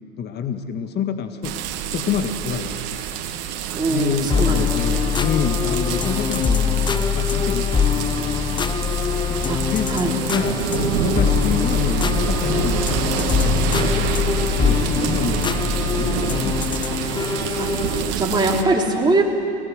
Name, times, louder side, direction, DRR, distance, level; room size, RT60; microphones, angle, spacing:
voice 1, 0.2-1.6 1.9-3.0 3.9-8.8 9.3-14.1 14.6-15.5 15.9-16.5, left 7 dB, 30° left, 7 dB, 1.8 m, -28 dB
sound 1, 1.4-18.6, right 9 dB, 45° right, 2.1 m, -27 dB
voice 2, 3.7-5.1 9.5-9.6 9.9-10.2 17.6-19.2, right 2 dB, 15° right, -1 dB, 3.6 m, -22 dB
sound 2, 4.3-18.1, left 7 dB, 15° left, 0.7 m, -23 dB
30.0 x 19.0 x 6.5 m, 2.3 s
hypercardioid pair, 105°, 33 cm